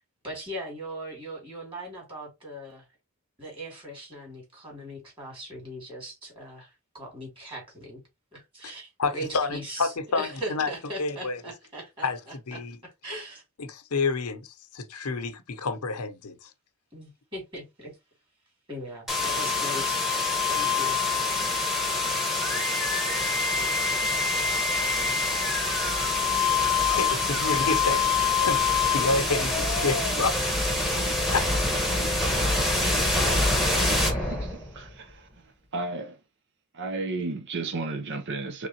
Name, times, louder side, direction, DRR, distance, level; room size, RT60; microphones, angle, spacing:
voice 1, 0.2-2.8 3.4-8.0 8.3-13.4 16.9-18.0 18.7-20.1 20.5-21.0, equal, 25° right, 2.6 m, -39 dB
voice 2, 9.0-10.7 11.0-11.4 12.0-12.2 12.5-12.8 13.6-16.5 26.9-28.6 28.9-30.9 31.3-31.5 32.1-32.2, left 4 dB, 80° left, 0.8 m, -29 dB
sound 1, 19.1-34.9, left 3 dB, ahead, 1.1 m, -25 dB
voice 3, 34.1-35.3 35.7-36.2 36.7-38.7, right 3 dB, 55° right, 0.6 m, -33 dB
3.8 x 3.6 x 2.9 m
head